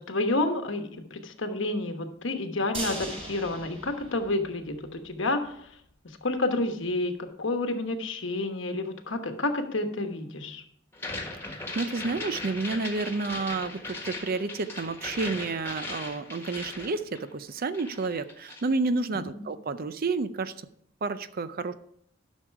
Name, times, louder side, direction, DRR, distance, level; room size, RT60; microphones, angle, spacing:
voice 1, 0.0-10.6 19.1-19.4, left 2 dB, 70° left, 6 dB, 1.2 m, -30 dB
sound 1, 2.7-4.9 5.2-5.3 5.7-5.8, right 1 dB, 30° right, 3.4 m, -38 dB
sound 2, 10.9-17.5 17.7-18.7, left 2 dB, 15° left, 1.5 m, -38 dB
voice 2, 11.4-20.6 21.0-21.7, right 3 dB, 50° right, 13 dB, 0.5 m, -30 dB
11.5 x 6.4 x 4.7 m, 0.69 s
head